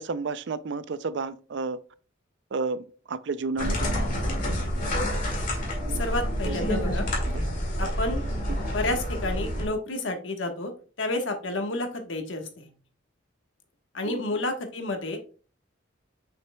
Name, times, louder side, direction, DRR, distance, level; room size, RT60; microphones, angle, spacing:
voice 1, 0.0-1.8 2.5-4.2 5.8-6.0 6.4-6.6 7.2-7.4 8.5-8.6 14.0-14.2, right 4 dB, 65° right, 0.4 m, -32 dB
sound 1, 3.6-9.7, equal, 40° left, 2.1 m, -28 dB
voice 2, 5.9-7.1 7.8-8.2 8.6-10.7 11.0-12.7 13.9-15.3, left 2 dB, 75° left, 1.3 m, -30 dB
7.5 x 5.8 x 2.2 m
head